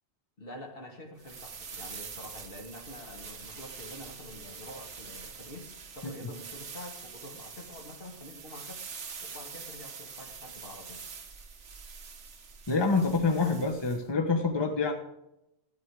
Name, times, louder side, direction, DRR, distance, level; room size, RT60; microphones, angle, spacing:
voice 1, 0.4-8.8 9.2-11.0, left 1 dB, 50° left, 2 dB, 2.1 m, -47 dB
sound 1, 1.2-14.0, right 5 dB, 70° right, 1.5 m, -45 dB
voice 2, 12.7-14.9, left 4 dB, 20° left, 2 dB, 1.2 m, -26 dB
14.0 x 9.3 x 4.8 m, 0.87 s
omnidirectional pair, 1.2 m